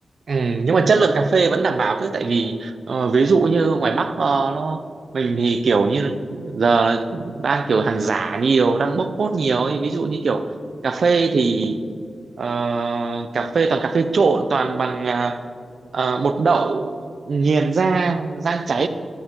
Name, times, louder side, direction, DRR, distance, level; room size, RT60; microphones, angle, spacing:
voice 1, 0.3-4.8 5.1-10.4 10.8-11.8 12.4-15.4 15.9-18.9, right 4 dB, 65° right, 10 dB, 0.6 m, -20 dB
12.5 x 9.8 x 3.8 m, 2.3 s
wide cardioid pair, 90°, 0 cm